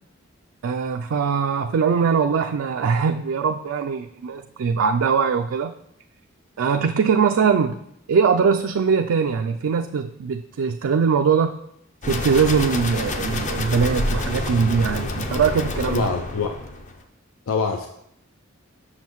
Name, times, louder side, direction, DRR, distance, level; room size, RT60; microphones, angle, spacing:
voice 1, 0.6-5.7 6.6-7.8 8.1-11.6 12.1-16.1, right 6 dB, 75° right, 5 dB, 0.3 m, -21 dB
sound 1, 12.0-17.0, left 2 dB, 35° left, 0.6 m, -28 dB
voice 2, 15.9-16.6 17.5-17.9, left 4 dB, 85° left, 4 dB, 0.5 m, -25 dB
7.3 x 6.3 x 3.0 m, 0.75 s
head